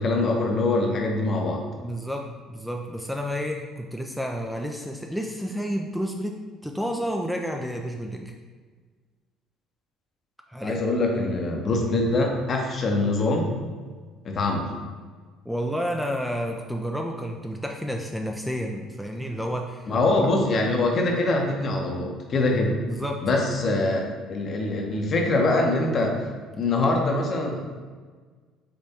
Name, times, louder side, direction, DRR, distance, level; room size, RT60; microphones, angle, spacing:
voice 1, 0.0-1.6 10.6-13.6 14.2-14.7 19.9-22.8 23.2-24.0 24.3-26.2 26.5-27.6, left 2 dB, 45° left, 1 dB, 0.8 m, -23 dB
voice 2, 1.8-8.3 10.5-10.8 15.5-19.9 20.2-20.3 22.9-23.3, equal, ahead, 2 dB, 0.4 m, -30 dB
5.2 x 3.4 x 2.8 m, 1.5 s
figure-of-eight pair, 55°, 0 cm